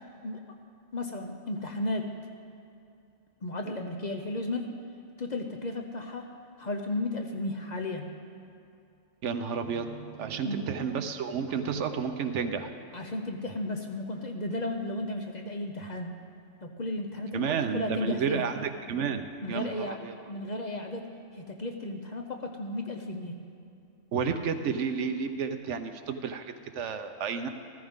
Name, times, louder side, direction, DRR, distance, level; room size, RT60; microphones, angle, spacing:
voice 1, 0.9-2.1 3.4-4.7 5.2-6.3 6.6-8.1 10.4-10.7 12.9-16.1 16.6-18.5 19.4-21.1 21.3-23.3, left 2 dB, 40° left, 3 dB, 0.8 m, -34 dB
voice 2, 9.2-12.7 17.3-20.1 24.1-27.5, right 6 dB, 75° right, 8 dB, 1.0 m, -31 dB
14.0 x 14.0 x 3.6 m, 2.6 s
omnidirectional pair, 1.3 m